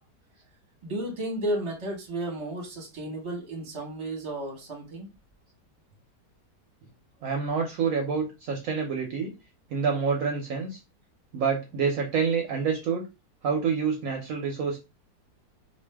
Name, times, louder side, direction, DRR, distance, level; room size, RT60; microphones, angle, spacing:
voice 1, 0.8-5.1, right 1 dB, 25° right, 0 dB, 0.8 m, -33 dB
voice 2, 7.2-9.3 9.7-10.8 11.3-13.0 13.4-14.8, right 6 dB, 65° right, 1 dB, 1.0 m, -27 dB
2.6 x 2.4 x 3.3 m, 0.25 s
omnidirectional pair, 1.8 m